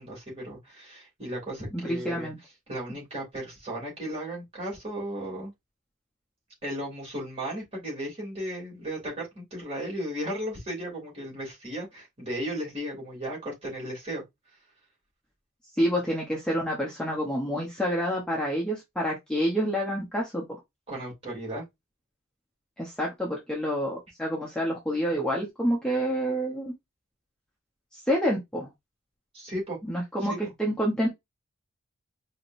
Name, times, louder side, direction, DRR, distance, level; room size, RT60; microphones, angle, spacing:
voice 1, 0.0-2.3 2.7-5.5 6.6-14.2 20.9-21.6 29.3-29.8 30.2-30.4, right 1 dB, 30° right, 2.9 m, -35 dB
voice 2, 1.7-2.4 15.7-20.4 22.8-26.7 27.9-28.7 29.9-31.1, equal, 5° left, 0.9 m, -28 dB
5.0 x 2.9 x 2.6 m
head